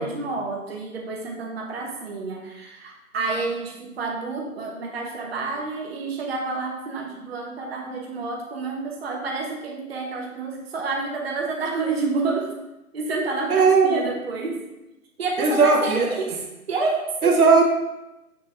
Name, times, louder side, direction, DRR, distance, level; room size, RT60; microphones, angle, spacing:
voice 1, 0.0-12.5 12.9-14.6 15.2-16.4 16.7-17.4, right 3 dB, 45° right, 0 dB, 0.6 m, -29 dB
voice 2, 13.5-14.1 15.4-16.1 17.2-17.6, right 4 dB, 75° right, 2 dB, 0.9 m, -18 dB
6.3 x 2.6 x 3.2 m, 0.96 s
figure-of-eight pair, 150°, 44 cm